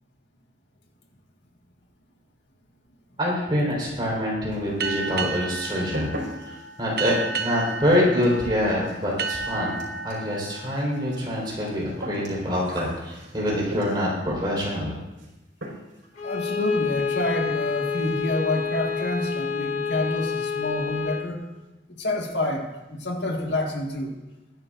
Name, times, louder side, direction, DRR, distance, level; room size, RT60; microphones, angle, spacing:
voice 1, 3.2-15.0, left 1 dB, 25° right, -5 dB, 4.3 m, -25 dB
sound 1, 4.5-5.1 5.3-14.2 15.2-15.4 15.6-16.1 16.4-16.5 16.8-16.9 17.2-17.4 17.7-18.2, equal, 85° right, 4.5 m, -40 dB
sound 2, 4.8-12.1, right 4 dB, 55° right, 0.8 m, -33 dB
voice 2, 16.2-21.4 22.0-24.1, left 1 dB, 75° left, 1 dB, 1.8 m, -28 dB
Bowed string instrument, 16.2-21.3, left 6 dB, 40° left, 1.6 m, -28 dB
20.5 x 11.0 x 2.6 m, 1.0 s
head